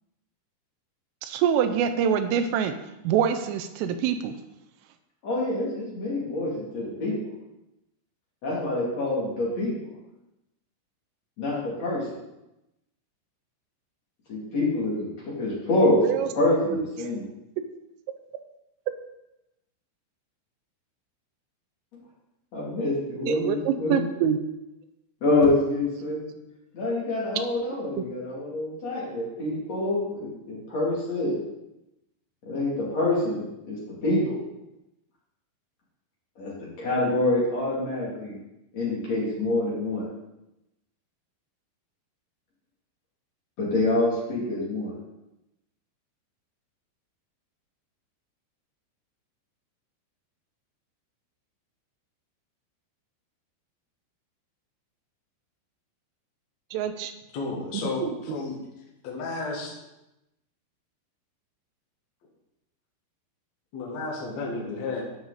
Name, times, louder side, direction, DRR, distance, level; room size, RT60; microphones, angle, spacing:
voice 1, 1.2-2.8 3.0-4.3 16.0-16.3 16.7-16.9 23.3-24.4 28.0-28.1 56.7-57.1 58.3-58.4, right 8 dB, 85° right, 8 dB, 3.1 m, -25 dB
voice 2, 5.2-7.3 8.4-9.9 11.4-12.1 14.3-16.1 16.3-17.2 22.5-24.1 25.2-26.4 26.7-31.4 32.5-34.4 36.4-38.3 38.7-40.0 43.6-44.9, left 2 dB, 40° left, -6 dB, 3.0 m, -26 dB
voice 3, 57.3-58.5 59.0-59.7 63.7-65.0, left 3 dB, 55° left, -2 dB, 1.9 m, -32 dB
13.0 x 5.6 x 4.0 m, 0.92 s
omnidirectional pair, 5.8 m